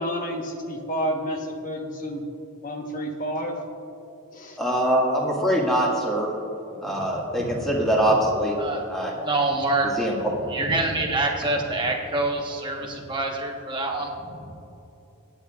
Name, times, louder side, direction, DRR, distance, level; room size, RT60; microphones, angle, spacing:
voice 1, 0.0-2.2 2.6-3.6 4.3-4.6, equal, 35° left, 2 dB, 1.2 m, -30 dB
voice 2, 4.6-6.3 6.8-8.6 8.9-9.1 10.0-10.1, equal, ahead, -4 dB, 2.0 m, -23 dB
voice 3, 9.2-10.1 10.5-14.4, right 2 dB, 20° right, 0 dB, 1.3 m, -26 dB
24.5 x 9.2 x 2.5 m, 2.8 s
head